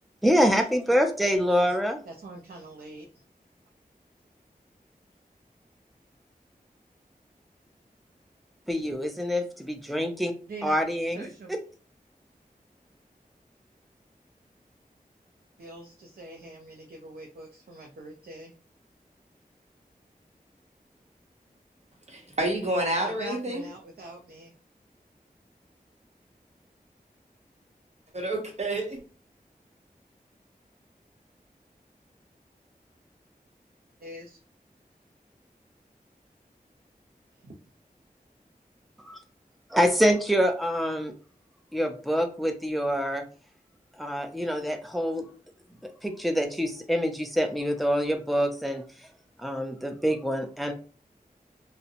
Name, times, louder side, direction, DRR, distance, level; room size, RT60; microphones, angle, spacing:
voice 1, 0.2-2.0 8.7-10.3 10.6-11.6 39.0-39.2 39.7-41.1 41.7-43.2 44.0-45.3 46.0-48.8 49.4-50.7, equal, ahead, 5 dB, 0.4 m, -26 dB
voice 2, 2.1-3.2 10.5-10.8 11.2-11.5 15.6-18.5 23.0-24.5 34.0-34.4 37.4-37.5, right 2 dB, 80° right, -1 dB, 0.5 m, -43 dB
voice 3, 22.1-23.6 28.1-29.0, right 1 dB, 45° right, 1 dB, 0.9 m, -29 dB
2.7 x 2.1 x 2.5 m, 0.37 s
wide cardioid pair, 70°, 16 cm